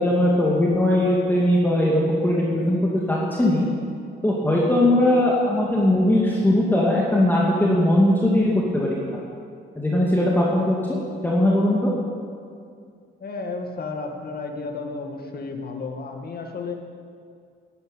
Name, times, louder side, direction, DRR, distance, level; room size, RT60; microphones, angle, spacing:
voice 1, 0.0-3.7 4.2-9.2 9.8-10.8 11.2-11.9, left 1 dB, 10° left, -4 dB, 2.4 m, -20 dB
voice 2, 13.2-16.7, left 3 dB, 50° left, 3 dB, 2.1 m, -32 dB
11.5 x 11.0 x 9.1 m, 2.3 s
cardioid pair, 90°, 20 cm